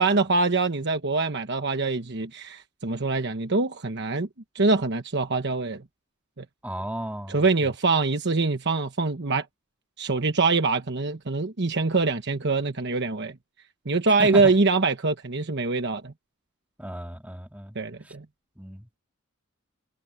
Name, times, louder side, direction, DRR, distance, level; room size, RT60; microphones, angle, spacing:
voice 1, 0.0-4.3 4.5-5.8 6.4-6.5 7.3-9.5 10.0-13.4 13.8-16.1 17.7-18.2, right 3 dB, 55° right, 1.2 m, -24 dB
voice 2, 6.6-7.7 14.2-14.6 16.8-17.8 18.0-18.1 18.6-18.9, right 1 dB, 5° right, 2.1 m, -35 dB
head